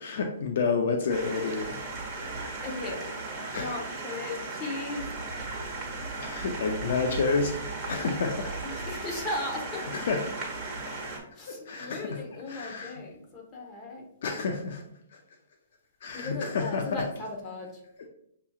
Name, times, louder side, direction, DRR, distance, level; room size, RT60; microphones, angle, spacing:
voice 1, 0.0-1.8 3.5-3.7 6.2-7.5 7.9-8.5 9.9-10.4 11.5-12.2 12.5-12.9 14.2-14.8 15.1-15.2 16.0-17.0, left 4 dB, 65° left, 4 dB, 0.6 m, -29 dB
sound 1, 1.1-11.2, right 3 dB, 20° right, 1.4 m, -36 dB
voice 2, 2.6-3.0 3.5-5.1 8.7-10.0 11.3-14.1 16.1-17.7, left 2 dB, 25° left, -1 dB, 1.1 m, -37 dB
6.7 x 2.9 x 2.4 m, 0.74 s
hypercardioid pair, 145°, 0 cm